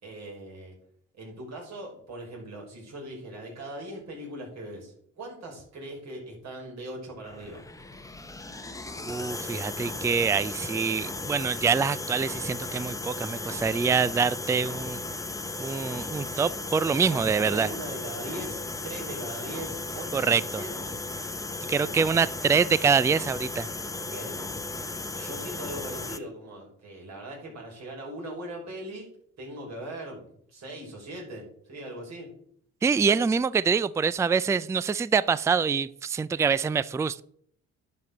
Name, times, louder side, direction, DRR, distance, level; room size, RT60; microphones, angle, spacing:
voice 1, 0.0-0.7 1.2-7.6 17.0-20.3 20.6-20.7 24.0-24.4 25.1-29.1 29.4-32.3, right 1 dB, 60° right, -1 dB, 5.4 m, -40 dB
sound 1, 7.3-26.2, left 2 dB, 10° left, 0.8 m, -36 dB
voice 2, 9.0-15.0 15.6-17.7 20.1-20.6 21.7-23.7 32.8-37.2, right 5 dB, 10° right, 19 dB, 0.3 m, -25 dB
11.0 x 6.1 x 6.5 m, 0.66 s
cardioid pair, 90°, 30 cm